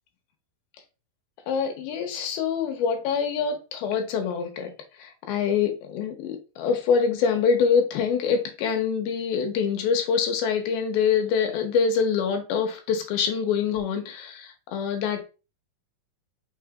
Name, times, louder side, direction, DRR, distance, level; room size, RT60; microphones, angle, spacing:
voice 1, 1.5-4.7 5.0-15.2, left 6 dB, 80° left, 2.7 m, -25 dB
5.7 x 3.8 x 2.4 m
omnidirectional pair, 4.4 m